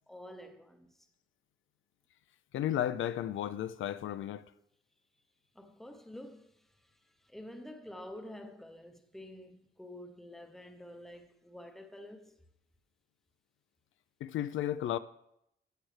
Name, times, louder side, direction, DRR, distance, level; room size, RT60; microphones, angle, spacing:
voice 1, 0.1-1.1 5.5-12.4, left 1 dB, ahead, 0.7 m, -49 dB
voice 2, 2.5-4.4 14.2-15.0, left 11 dB, 70° left, 0.4 m, -33 dB
13.5 x 7.8 x 3.3 m
wide cardioid pair, 155°, 21 cm